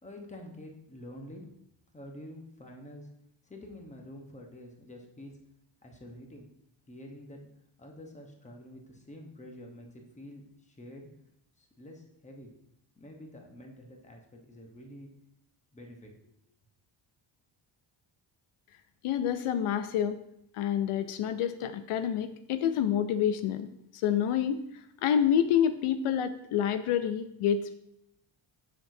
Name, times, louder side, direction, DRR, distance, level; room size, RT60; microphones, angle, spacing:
voice 1, 0.0-1.4 1.9-3.1 3.4-5.4 5.8-6.5 6.9-7.5 7.8-11.1 11.6-12.5 13.0-15.1 15.7-16.1, left 1 dB, 15° left, 2 dB, 1.0 m, -48 dB
voice 2, 19.0-20.2 20.5-23.7 23.9-24.6 25.0-27.8, left 9 dB, 80° left, 10 dB, 0.6 m, -28 dB
7.0 x 6.0 x 2.7 m, 0.78 s
cardioid pair, 125°, 50 cm